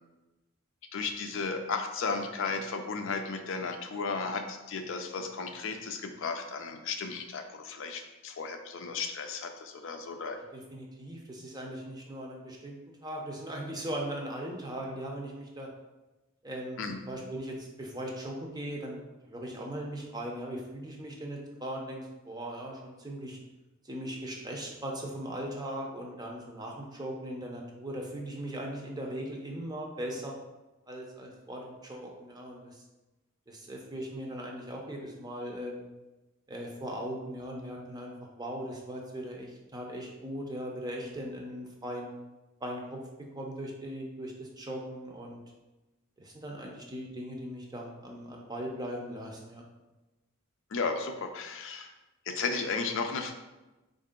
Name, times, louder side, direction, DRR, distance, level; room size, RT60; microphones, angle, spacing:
voice 1, 0.9-10.4 16.8-17.0 50.7-51.9 52.3-53.3, left 4 dB, 60° left, 5 dB, 0.4 m, -34 dB
voice 2, 10.4-12.8 13.0-15.7 16.4-16.8 17.1-23.4 23.8-30.3 30.9-32.8 33.5-35.8 36.5-42.1 42.6-43.0 43.3-45.4 46.2-49.6, right 1 dB, 20° right, 0 dB, 0.6 m, -39 dB
4.6 x 2.6 x 3.6 m, 1.1 s
head